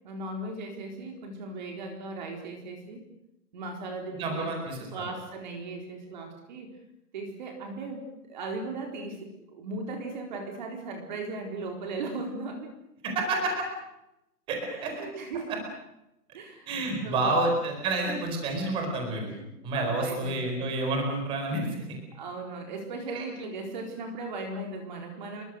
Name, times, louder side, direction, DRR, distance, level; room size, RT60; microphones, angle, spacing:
voice 1, 0.0-3.0 3.5-6.7 7.1-12.7 14.7-15.6 16.3-16.8 17.0-17.5 19.7-20.8 22.1-25.4, right 3 dB, 30° right, 3 dB, 4.2 m, -37 dB
voice 2, 4.1-5.1 13.0-13.7 14.5-14.9 15.5-15.6 16.7-19.3 19.6-21.7 23.1-23.2, right 2 dB, 10° right, 3 dB, 4.4 m, -29 dB
29.0 x 23.0 x 6.5 m, 0.87 s
hypercardioid pair, 175°, 48 cm